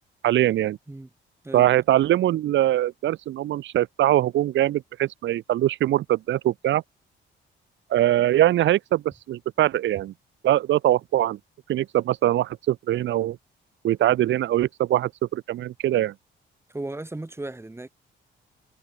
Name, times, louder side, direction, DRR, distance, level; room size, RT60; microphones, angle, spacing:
voice 1, 0.2-0.8 1.5-6.8 7.9-9.0 9.3-10.1 10.4-11.4 11.7-13.4 13.8-16.1, right 13 dB, 70° right, 0.9 m, -22 dB
voice 2, 16.7-17.9, right 2 dB, 10° right, 4.0 m, -35 dB
cardioid pair, 90°, 20 cm